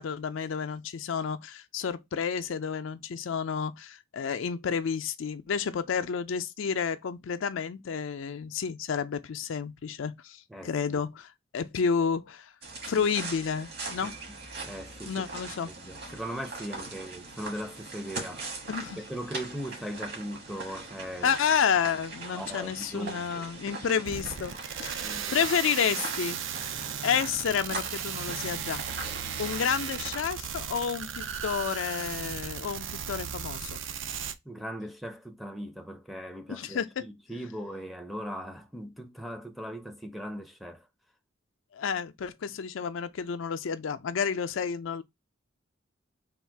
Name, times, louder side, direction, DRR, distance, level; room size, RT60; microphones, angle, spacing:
voice 1, 0.0-12.5 12.9-14.2 15.0-15.7 18.7-19.0 21.2-24.5 24.8-26.4 27.0-33.8 36.5-37.1 41.7-45.0, left 6 dB, 75° left, 0.4 m, -30 dB
voice 2, 10.5-11.0 14.0-14.1 14.6-15.1 15.6-18.6 19.0-21.3 22.3-23.5 25.0-25.4 34.5-40.8, equal, ahead, 0.5 m, -39 dB
sound 1, 12.6-30.2, right 3 dB, 55° right, 1.4 m, -41 dB
sound 2, 24.1-34.3, right 8 dB, 70° right, 0.4 m, -36 dB
3.5 x 2.4 x 4.5 m
head